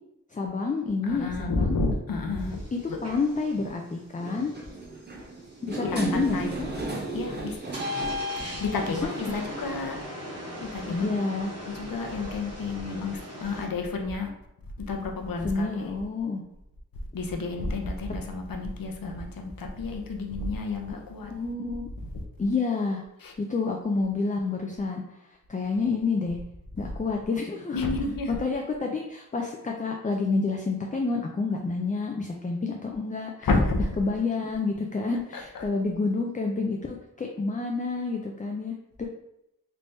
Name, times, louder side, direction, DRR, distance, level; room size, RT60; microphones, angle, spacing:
voice 1, 0.3-1.8 2.7-4.5 5.6-6.7 8.9-9.4 10.9-11.5 15.4-16.4 20.9-21.0 21.3-21.9 22.4-23.0 23.4-25.0 25.5-26.4 26.8-27.9 28.4-33.5 33.8-39.1, left 4 dB, 25° left, 1 dB, 0.3 m, -29 dB
voice 2, 1.1-2.6 2.9-3.0 5.8-6.5 7.1-7.6 8.3-10.0 10.6-11.2 11.6-14.3 14.9-15.9 17.1-21.3 23.2-23.3 27.7-28.4 33.4-33.8 35.3-35.6, left 3 dB, 85° left, 2 dB, 0.6 m, -30 dB
sound 1, 2.4-2.6 3.6-3.8 4.2-9.3, right 1 dB, 30° right, 0.6 m, -34 dB
sound 2, 2.4-13.7, equal, 50° right, 0.9 m, -42 dB
3.3 x 3.3 x 2.6 m, 0.84 s
wide cardioid pair, 85°, 33 cm